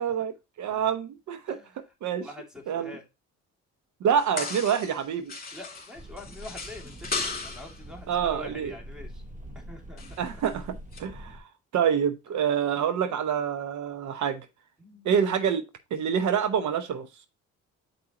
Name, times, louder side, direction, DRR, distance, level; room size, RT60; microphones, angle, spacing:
voice 1, 0.0-2.3 2.7-2.9 4.0-5.3 8.1-8.7 10.2-11.4 11.7-14.5 15.0-15.6 15.9-17.1, right 8 dB, 70° right, 0.8 m, -27 dB
voice 2, 2.2-3.0 5.5-9.2 9.6-10.0 10.3-10.4 14.8-15.1, left 2 dB, ahead, 2.1 m, -45 dB
sound 1, 4.2-5.0 5.3-7.8 10.0-10.5 10.9-11.0, left 4 dB, 30° left, 2.4 m, -36 dB
sound 2, 5.9-11.4, equal, 25° right, 1.5 m, -44 dB
7.8 x 4.8 x 2.9 m
cardioid pair, 90°, 30 cm